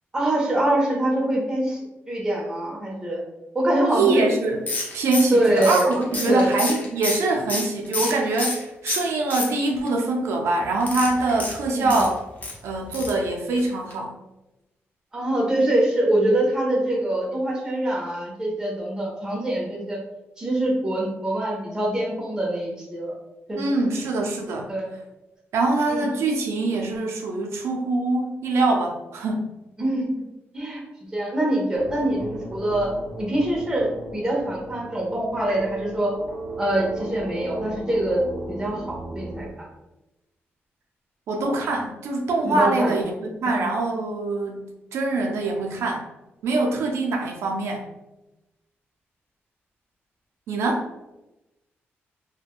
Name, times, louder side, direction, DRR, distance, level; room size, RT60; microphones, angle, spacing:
voice 1, 0.1-1.8 2.1-3.2 3.5-4.2 5.3-6.5 11.7-12.0 15.1-20.0 20.4-23.1 23.5-23.6 24.7-24.9 25.9-26.1 29.8-30.1 30.5-30.8 31.1-32.9 33.2-36.1 36.6-38.2 38.5-39.7 42.4-42.9 43.4-43.6, right 1 dB, 15° right, -3 dB, 0.7 m, -24 dB
voice 2, 3.9-4.6 4.9-12.2 12.6-14.1 23.6-24.7 25.5-29.5 41.3-46.0 46.4-47.8 50.5-50.9, right 2 dB, 85° right, 0 dB, 0.4 m, -24 dB
sound 1, 4.7-8.6 8.9-9.9 10.8-12.5 12.9-13.2 13.5-13.6 13.9-14.0, left 2 dB, 35° left, 0.6 m, -29 dB
sound 2, 31.7-39.5, right 2 dB, 45° right, 0.8 m, -36 dB
3.3 x 2.1 x 2.4 m, 0.98 s
wide cardioid pair, 130°, 4 cm